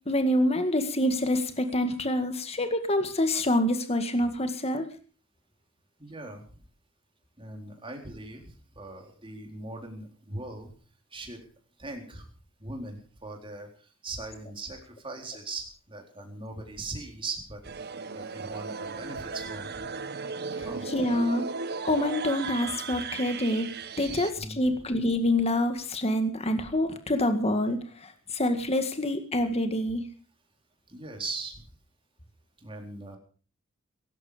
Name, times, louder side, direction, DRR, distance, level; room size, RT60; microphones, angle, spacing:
voice 1, 0.1-4.9 20.9-21.4 21.8-23.7 24.0-30.0, left 1 dB, 30° left, 7 dB, 1.9 m, -26 dB
voice 2, 6.0-6.6 7.4-10.7 11.1-11.4 11.8-12.3 12.6-19.7 20.6-20.9 24.1-24.8 30.9-31.7 32.6-33.2, right 2 dB, 25° right, 2 dB, 4.1 m, -40 dB
sound 1, 17.6-24.3, right 4 dB, 50° right, 0.9 m, -36 dB
18.0 x 16.0 x 5.1 m, 0.39 s
head